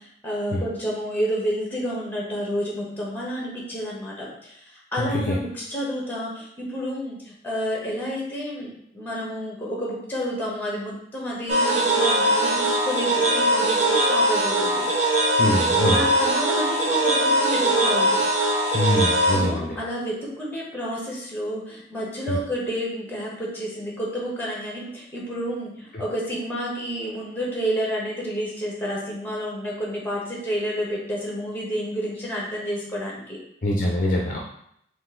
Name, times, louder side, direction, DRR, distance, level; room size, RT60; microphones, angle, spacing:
voice 1, 0.0-14.8 15.9-18.2 19.3-33.4, equal, 10° left, -4 dB, 1.1 m, -30 dB
voice 2, 5.0-5.4 15.4-16.1 18.7-19.8 22.3-22.4 25.9-26.0 33.6-34.4, left 1 dB, 45° left, -2 dB, 0.5 m, -24 dB
sound 1, 11.5-19.4, right 1 dB, 40° right, 0.6 m, -21 dB
4.0 x 2.6 x 3.7 m, 0.71 s
head